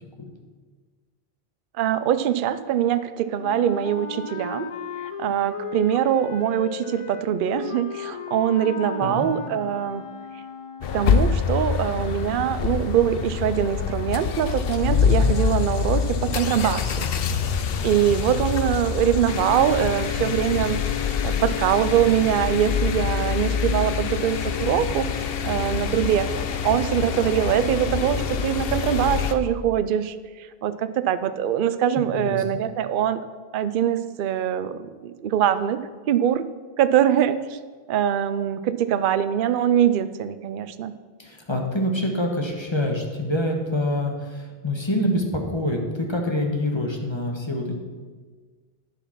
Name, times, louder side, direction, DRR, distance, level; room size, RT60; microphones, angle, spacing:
voice 1, 1.8-4.7 5.2-10.0 10.9-17.1 17.8-26.3 26.6-33.2 33.5-35.8 36.1-36.4 36.8-37.6 37.9-40.9, right 10 dB, 60° right, 12 dB, 0.7 m, -23 dB
Wind instrument woodwind instrument, 3.4-11.1, left 5 dB, 50° left, 0.4 m, -35 dB
sound 1, 10.8-29.3, left 7 dB, 70° left, 0.9 m, -25 dB
voice 2, 32.0-32.4 41.2-47.8, left 1 dB, 25° left, 2 dB, 1.3 m, -26 dB
10.0 x 7.0 x 5.8 m, 1.5 s
omnidirectional pair, 1.0 m